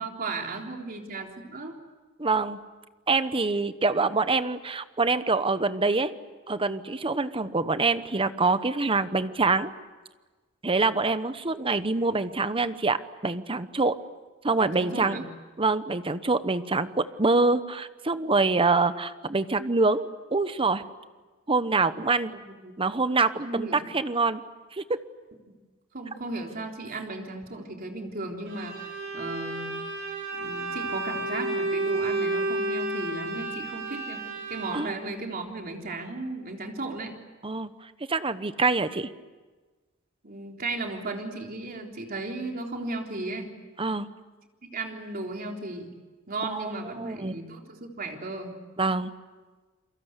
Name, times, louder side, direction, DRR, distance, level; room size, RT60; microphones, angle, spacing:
voice 1, 0.0-1.8 14.6-15.3 22.5-22.7 23.4-23.8 25.9-29.8 30.4-34.2 34.5-37.1 40.2-43.5 44.7-45.9 46.3-48.5, right 2 dB, 45° right, 2 dB, 3.7 m, -35 dB
voice 2, 2.2-2.6 3.1-6.1 6.5-9.7 10.6-14.0 14.4-15.2 15.6-20.8 21.5-22.3 22.8-24.4 24.7-25.0 34.7-34.9 37.4-39.1 43.8-44.1 46.5-46.7 47.0-47.4 48.8-49.1, right 3 dB, 25° right, 12 dB, 1.0 m, -25 dB
Bowed string instrument, 28.5-35.0, right 2 dB, 60° right, 7.1 m, -31 dB
29.5 x 23.0 x 8.3 m, 1.3 s
head